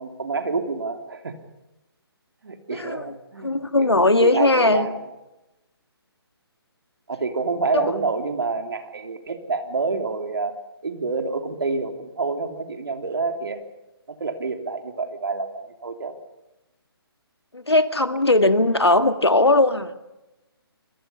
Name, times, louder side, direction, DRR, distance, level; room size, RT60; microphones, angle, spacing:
voice 1, 0.0-1.3 2.4-5.0 7.1-10.6 10.8-13.6 14.1-16.1, right 4 dB, 60° right, 5 dB, 3.2 m, -28 dB
voice 2, 2.7-3.1 3.4-4.9 7.7-7.9 17.5-19.9, left 2 dB, 85° left, 10 dB, 1.9 m, -19 dB
28.0 x 21.5 x 5.6 m, 0.98 s
figure-of-eight pair, 145°, 13 cm